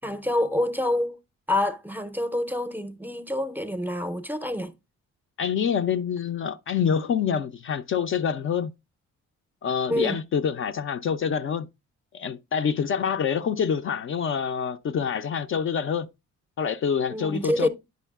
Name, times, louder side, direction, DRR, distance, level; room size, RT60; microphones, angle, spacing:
voice 1, 0.0-1.2 1.5-4.7 9.9-10.2 17.1-17.7, left 1 dB, 5° right, 0.5 m, -27 dB
voice 2, 5.4-8.7 9.6-11.7 12.1-16.1 16.6-17.7, left 7 dB, 45° left, 0.4 m, -26 dB
9.1 x 5.2 x 2.3 m
cardioid pair, 90°, 30 cm